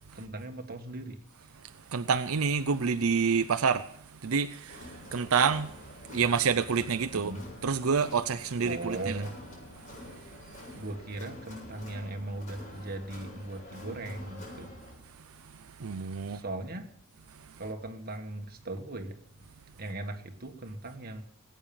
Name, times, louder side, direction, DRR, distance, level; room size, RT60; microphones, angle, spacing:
voice 1, 0.1-1.2 1.4-1.6 7.1-7.5 8.6-9.4 10.2-10.3 10.7-14.7 16.3-16.9 17.6-19.2 19.8-21.2, right 2 dB, 45° right, 1.7 m, -38 dB
voice 2, 1.9-3.9 4.2-4.9 5.1-5.7 6.1-7.3 7.6-9.2 15.8-16.4, right 5 dB, 85° right, 0.6 m, -27 dB
Crowd, 4.7-14.9, left 1 dB, 35° left, 7.8 m, -47 dB
19.5 x 9.2 x 7.1 m
head